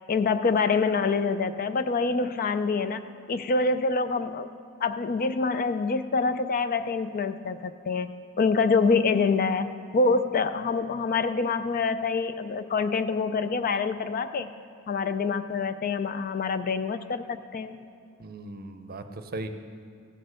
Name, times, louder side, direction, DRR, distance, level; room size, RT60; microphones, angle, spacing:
voice 1, 0.1-3.0 3.3-4.5 4.8-14.5 14.9-17.9, left 4 dB, 40° left, 11 dB, 0.4 m, -26 dB
voice 2, 18.2-19.5, right 2 dB, 45° right, 8 dB, 0.6 m, -38 dB
15.5 x 6.5 x 6.3 m, 2.4 s
head